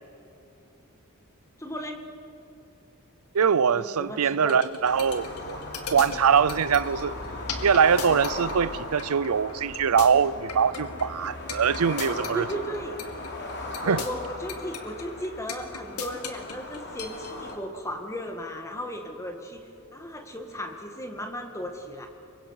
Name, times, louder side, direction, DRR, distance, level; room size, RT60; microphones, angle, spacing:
voice 1, 1.6-2.0 3.7-4.6 12.3-13.0 13.8-19.6 19.9-22.1, equal, 15° left, 2.0 m, -36 dB
voice 2, 3.3-5.6 5.9-7.1 7.6-12.6 13.8-14.0, right 6 dB, 75° right, 0.5 m, -23 dB
sound 1, 4.5-17.5, left 6 dB, 85° left, 2.2 m, -36 dB
sound 2, 4.8-17.6, left 2 dB, 50° left, 3.1 m, -37 dB
26.5 x 23.5 x 5.9 m
head